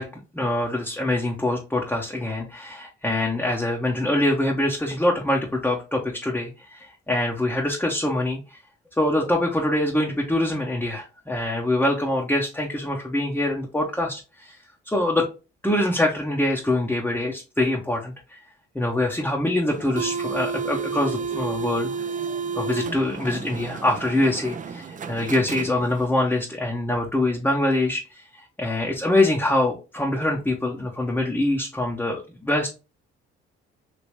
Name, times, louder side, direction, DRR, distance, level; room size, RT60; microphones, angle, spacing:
voice 1, 0.0-8.6 9.0-14.6 14.9-15.3 15.6-18.4 18.7-21.9 22.6-28.2 28.6-32.7, left 1 dB, 5° left, -1 dB, 0.8 m, -24 dB
sound 1, 19.7-26.2, right 6 dB, 30° right, 0.4 m, -31 dB
3.2 x 2.9 x 2.9 m, 0.30 s
hypercardioid pair, 50°, 29 cm